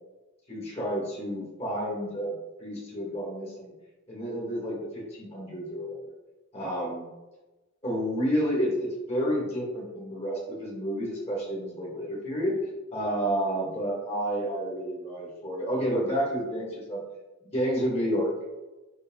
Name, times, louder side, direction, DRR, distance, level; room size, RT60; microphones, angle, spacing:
voice 1, 0.5-3.7 4.1-6.0 6.5-7.1 7.8-12.6 12.9-17.0 17.5-18.3, equal, 30° left, -4 dB, 2.3 m, -30 dB
9.7 x 3.3 x 4.0 m, 1.1 s
head